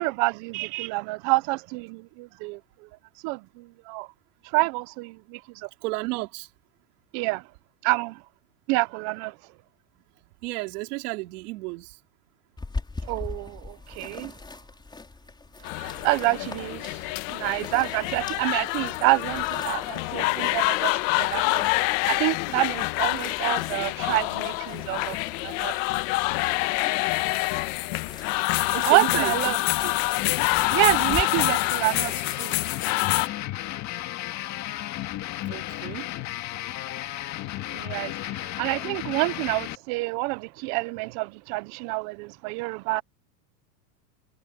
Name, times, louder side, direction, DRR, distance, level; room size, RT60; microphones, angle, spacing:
voice 1, 0.0-2.6 3.2-4.1 4.4-5.7 7.1-7.4 7.8-8.2 8.7-9.4 13.0-14.3 15.8-25.7 28.5-29.6 30.7-32.6 37.7-43.0, right 24 dB, 40° right, 0.5 m, -28 dB
voice 2, 5.8-6.5 10.4-12.0 28.7-29.6 29.8-29.9 35.5-36.1 37.1-37.3, right 23 dB, 65° right, 3.7 m, -33 dB
sound 1, 12.6-31.2, left 3 dB, 10° left, 4.7 m, -42 dB
sound 2, 15.6-33.3, left 23 dB, 50° left, 1.1 m, -26 dB
sound 3, 30.2-39.8, left 15 dB, 35° left, 1.9 m, -34 dB
supercardioid pair, 145°, 49 cm